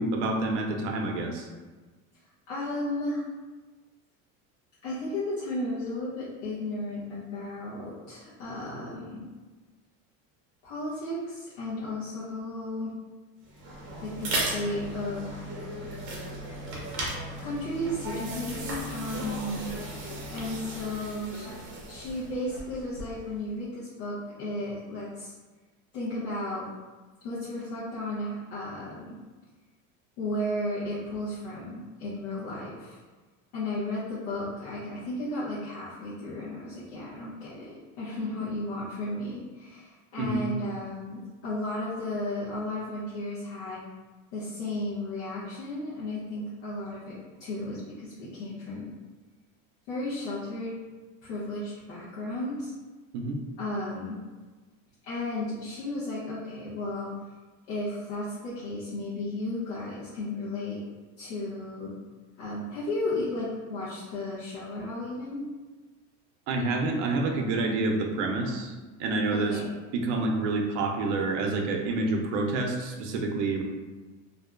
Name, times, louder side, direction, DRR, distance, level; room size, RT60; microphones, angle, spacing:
voice 1, 0.0-1.5 40.2-40.5 53.1-53.4 66.5-68.7 69.0-69.6 69.9-73.6, right 3 dB, 80° right, 2 dB, 0.5 m, -28 dB
voice 2, 2.5-3.2 4.8-9.2 10.6-12.9 14.0-15.6 17.4-19.7 20.3-21.5 21.9-25.3 25.9-26.6 27.2-29.2 30.2-33.0 33.5-43.8 44.3-48.9 49.9-50.7 51.2-52.7 53.6-54.2 55.0-57.1 57.7-60.8 61.2-61.9 62.4-65.5 69.3-69.7, left 1 dB, 85° left, -10 dB, 0.8 m, -34 dB
sound 1, 13.4-23.3, right 1 dB, 35° right, 0.6 m, -36 dB
2.6 x 2.2 x 2.4 m, 1.3 s
cardioid pair, 160°, 36 cm